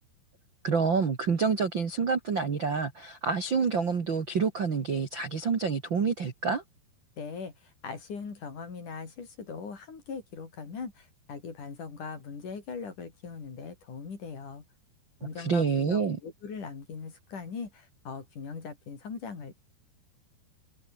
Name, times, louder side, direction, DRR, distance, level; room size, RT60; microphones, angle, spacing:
voice 1, 0.6-6.6 15.4-16.2, right 5 dB, 40° right, 1.8 m, -27 dB
voice 2, 7.2-14.6 15.2-19.5, left 5 dB, 45° left, 5.6 m, -40 dB
omnidirectional pair, 5.0 m